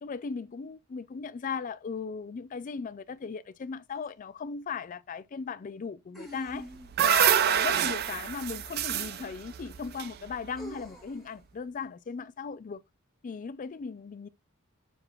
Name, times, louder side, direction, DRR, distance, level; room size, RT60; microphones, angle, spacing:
voice 1, 0.0-6.7 7.0-12.8 13.2-14.3, left 5 dB, 35° left, 0.3 m, -37 dB
sound 1, 4.0-4.1 6.1-7.1 9.0-9.1 10.6-11.3, equal, ahead, 1.1 m, -46 dB
sound 2, 6.5-10.8, right 9 dB, 45° right, 0.4 m, -27 dB
6.9 x 2.3 x 3.1 m
head